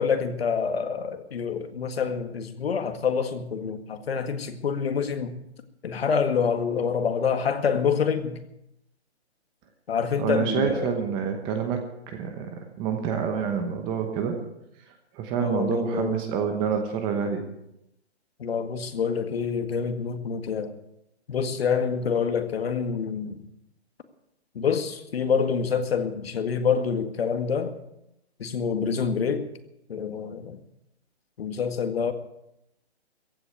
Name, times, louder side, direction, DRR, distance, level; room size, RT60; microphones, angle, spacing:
voice 1, 0.0-5.3 5.8-8.4 9.9-11.0 15.4-16.2 18.4-20.7 21.3-23.4 24.6-27.7 28.4-29.5 29.9-30.6 31.4-32.1, left 6 dB, 60° left, 8 dB, 1.9 m, -27 dB
voice 2, 10.2-11.8 12.1-12.5 12.8-14.4 15.1-17.4, right 7 dB, 15° right, 6 dB, 1.0 m, -27 dB
15.5 x 8.0 x 9.3 m, 0.82 s
hypercardioid pair, 160°, 33 cm